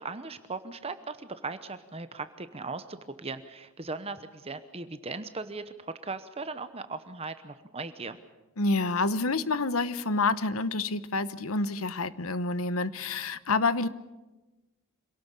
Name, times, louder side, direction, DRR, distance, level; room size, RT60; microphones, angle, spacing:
voice 1, 0.0-8.2, right 3 dB, 25° right, 11 dB, 0.9 m, -38 dB
voice 2, 8.6-13.9, left 3 dB, 75° left, 15 dB, 1.0 m, -28 dB
26.0 x 18.0 x 8.4 m, 1.1 s
head